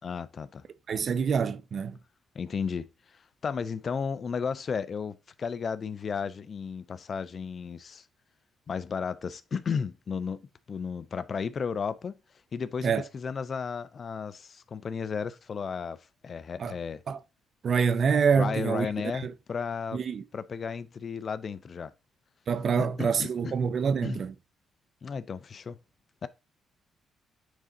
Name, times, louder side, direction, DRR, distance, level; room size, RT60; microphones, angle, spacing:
voice 1, 0.0-0.6 2.3-8.0 8.7-10.4 10.7-12.2 12.5-16.0 16.2-17.0 18.4-20.0 20.3-21.9 22.8-23.5 24.0-24.2 25.0-25.8 26.2-26.3, left 6 dB, 45° left, 0.5 m, -34 dB
voice 2, 0.9-2.0 12.8-13.0 16.6-16.7 17.1-17.2 17.6-18.9 19.2-19.3 19.9-20.2 22.5-24.3, right 6 dB, 50° right, 0.6 m, -26 dB
9.3 x 3.8 x 2.7 m
cardioid pair, 90°, 0 cm